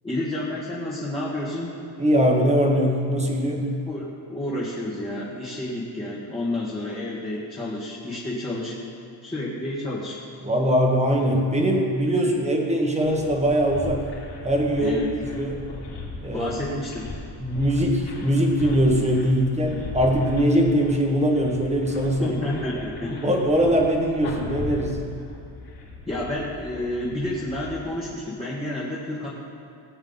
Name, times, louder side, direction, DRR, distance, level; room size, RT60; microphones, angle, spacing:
voice 1, 0.0-1.8 3.9-8.7 9.2-10.2 14.8-15.1 16.3-17.1 22.2-23.3 26.1-29.3, left 1 dB, 10° left, -8 dB, 1.6 m, -30 dB
voice 2, 2.0-3.7 10.4-14.1 14.4-15.0 15.3-15.6 16.2-16.5 17.4-22.4 23.1-25.1, equal, 15° right, 0 dB, 1.4 m, -21 dB
sound 1, 13.0-27.8, left 3 dB, 50° left, 3.4 m, -38 dB
18.0 x 8.7 x 4.0 m, 2.4 s
cardioid pair, 150°, 47 cm